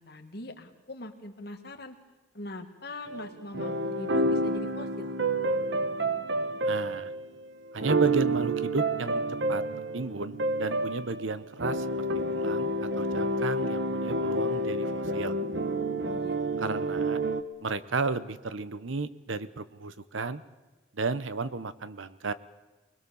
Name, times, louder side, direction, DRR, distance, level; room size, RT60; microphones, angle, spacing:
voice 1, 0.0-2.0 2.3-5.1 16.0-16.9, left 1 dB, 55° left, 5 dB, 2.1 m, -42 dB
sound 1, 3.1-17.4, right 1 dB, 65° right, 1.2 m, -29 dB
voice 2, 6.6-7.1 7.7-9.2 9.5-9.6 9.9-11.9 12.3-15.3 16.6-17.2 17.6-20.4 20.9-22.3, right 3 dB, 90° right, 14 dB, 1.0 m, -33 dB
24.5 x 21.0 x 7.1 m, 1.2 s
head